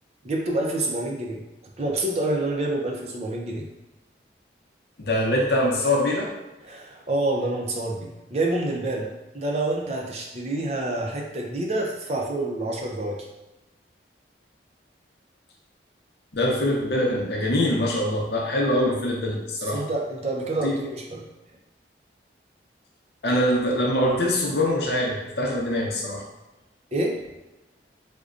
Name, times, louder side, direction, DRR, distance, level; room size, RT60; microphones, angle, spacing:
voice 1, 0.2-1.4 1.8-3.6 6.6-9.1 9.3-13.2 19.7-21.2 26.9-27.2, right 2 dB, 35° right, 0 dB, 0.5 m, -27 dB
voice 2, 5.0-6.3 16.3-19.8 20.6-20.7 23.2-26.2, left 1 dB, 60° left, -1 dB, 0.7 m, -23 dB
5.0 x 2.2 x 2.4 m, 1.0 s
head